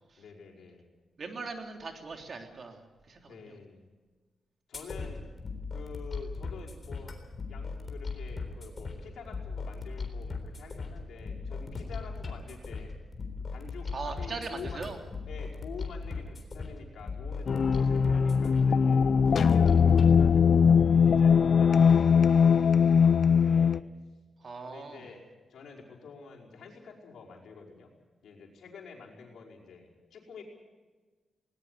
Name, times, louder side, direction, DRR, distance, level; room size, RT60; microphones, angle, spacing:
voice 1, 0.2-0.9 3.2-3.9 4.7-5.3 5.7-7.2 7.5-12.9 13.5-14.8 15.3-19.0 19.3-23.8 24.6-27.9 28.2-30.4, left 5 dB, 85° left, -2 dB, 5.2 m, -48 dB
voice 2, 1.2-3.5 13.9-15.0 24.4-25.1, right 4 dB, 50° right, 3 dB, 3.3 m, -40 dB
sound 1, 4.7-20.1, left 4 dB, 40° left, 3.8 m, -38 dB
sound 2, 17.5-23.8, left 6 dB, 60° left, 0.6 m, -21 dB
20.0 x 19.0 x 8.3 m, 1.3 s
cardioid pair, 100°, 0 cm